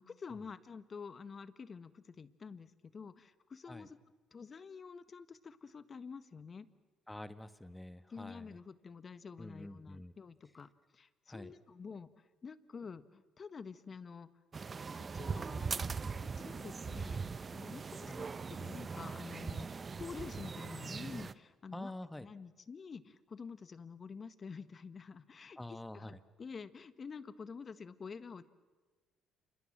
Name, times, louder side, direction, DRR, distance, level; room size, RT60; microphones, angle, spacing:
voice 1, 0.0-4.0 4.3-6.7 8.1-14.3 15.0-15.7 16.2-17.2 17.5-21.9 22.2-28.4, left 5 dB, 40° left, 13 dB, 1.6 m, -49 dB
voice 2, 7.1-8.5 9.4-10.1 11.3-11.5 18.1-18.2 21.7-22.3 25.6-26.2, left 1 dB, 10° left, 12 dB, 1.6 m, -46 dB
sound 1, 14.5-21.3, right 5 dB, 35° right, 1.0 m, -40 dB
28.5 x 26.5 x 7.5 m, 1.3 s
hypercardioid pair, 55°, 0 cm